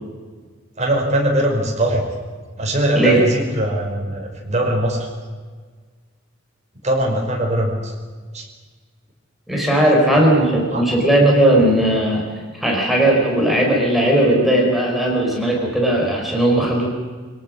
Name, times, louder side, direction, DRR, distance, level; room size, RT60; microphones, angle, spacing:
voice 1, 0.8-2.0 2.6-5.1 6.8-7.9 8.3-8.5 10.3-10.8, right 1 dB, 35° right, 0 dB, 5.7 m, -21 dB
voice 2, 9.5-12.3 12.6-16.9, right 1 dB, ahead, -2 dB, 4.6 m, -17 dB
26.5 x 18.5 x 6.5 m, 1.5 s
head